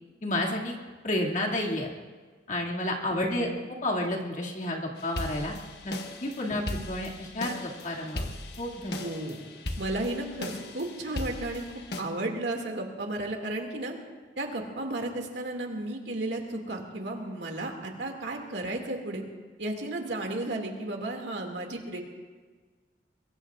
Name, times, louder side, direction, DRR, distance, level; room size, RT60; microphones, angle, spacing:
voice 1, 0.2-0.7 1.0-1.9 2.5-3.5 3.8-5.5 5.8-5.9 6.2-8.3 8.6-9.0, left 1 dB, 45° left, -2 dB, 2.3 m, -30 dB
voice 2, 3.2-3.6 6.5-6.6 9.0-9.4 9.8-11.6 12.0-14.0 14.4-19.2 19.6-22.0, right 2 dB, 80° right, 2 dB, 2.3 m, -33 dB
sound 1, 5.0-12.0, left 2 dB, 65° left, 1.4 m, -38 dB
22.5 x 22.5 x 2.5 m, 1.4 s
head